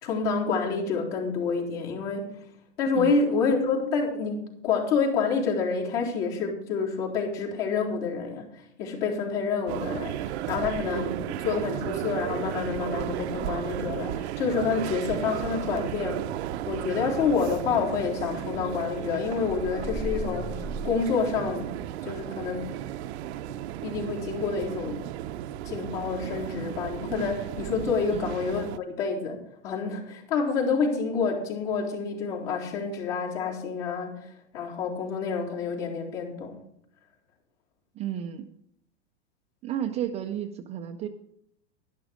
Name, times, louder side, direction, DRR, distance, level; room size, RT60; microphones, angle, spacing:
voice 1, 0.0-2.4 2.8-16.2 16.7-21.7 22.0-22.7 23.8-25.1 25.6-36.6, left 5 dB, 55° left, -2 dB, 3.9 m, -28 dB
sound 1, 9.7-28.8, right 12 dB, 65° right, 0.7 m, -34 dB
sound 2, 19.5-21.9, equal, 5° left, 0.7 m, -37 dB
voice 2, 38.0-38.5 39.6-41.1, right 9 dB, 20° right, 6 dB, 0.4 m, -32 dB
11.5 x 11.0 x 5.0 m, 0.74 s
supercardioid pair, 145°, 35 cm